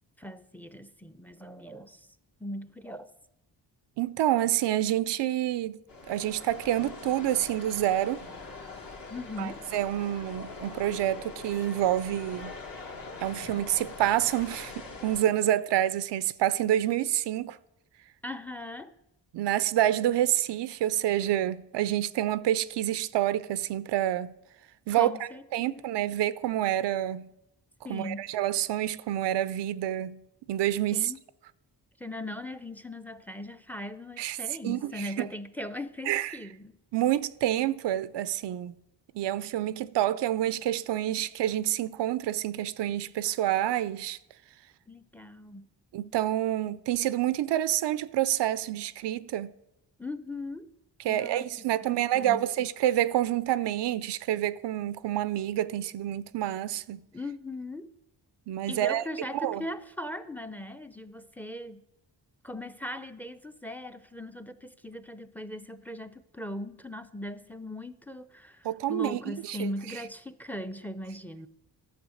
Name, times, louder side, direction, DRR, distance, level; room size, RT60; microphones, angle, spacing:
voice 1, 0.2-2.1 2.4-3.1 9.1-9.7 18.2-18.9 25.0-25.8 27.8-28.3 30.9-31.2 32.0-36.8 44.9-45.7 50.0-50.7 51.1-51.5 51.8-52.5 57.1-58.0 58.7-61.8 62.4-71.5, left 1 dB, 5° left, 0.5 m, -39 dB
voice 2, 4.0-5.8 6.1-8.2 9.4-12.6 13.2-17.6 19.3-24.3 24.9-27.3 27.9-30.2 30.5-31.1 34.2-34.4 34.6-35.3 36.1-36.4 36.9-38.7 39.1-44.2 45.9-49.5 51.0-57.1 58.5-59.0 59.3-59.7 68.6-69.7, right 12 dB, 90° right, 0.5 m, -28 dB
sound 1, 5.9-15.2, left 3 dB, 55° left, 1.9 m, -43 dB
11.0 x 7.1 x 6.3 m
cardioid pair, 75°, 41 cm